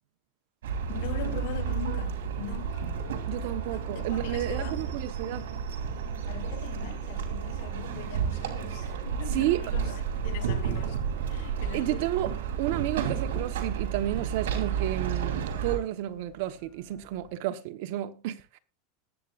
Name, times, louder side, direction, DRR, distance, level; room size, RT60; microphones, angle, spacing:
sound 1, 0.6-15.8, right 7 dB, 90° right, 2.9 m, -31 dB
voice 1, 0.9-2.8 3.6-4.8 6.3-12.3, left 11 dB, 70° left, 1.7 m, -41 dB
sound 2, 2.7-17.4, equal, 40° left, 4.5 m, -55 dB
voice 2, 3.3-5.5 9.3-9.6 11.7-18.6, right 14 dB, 65° right, 1.2 m, -31 dB
20.0 x 8.4 x 2.6 m
supercardioid pair, 130°, 0 cm